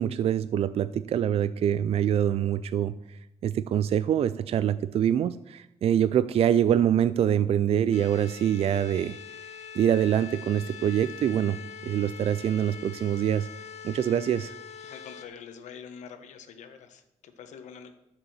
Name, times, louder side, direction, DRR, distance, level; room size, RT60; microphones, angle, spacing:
voice 1, 0.0-9.2 9.7-13.5 13.8-14.5, right 9 dB, 55° right, 14 dB, 0.4 m, -25 dB
sound 1, 7.9-15.3, left 8 dB, 65° left, 1.3 m, -43 dB
voice 2, 14.8-17.9, left 7 dB, 85° left, 7 dB, 1.3 m, -45 dB
11.0 x 6.8 x 7.2 m, 0.88 s
cardioid pair, 115°, 12 cm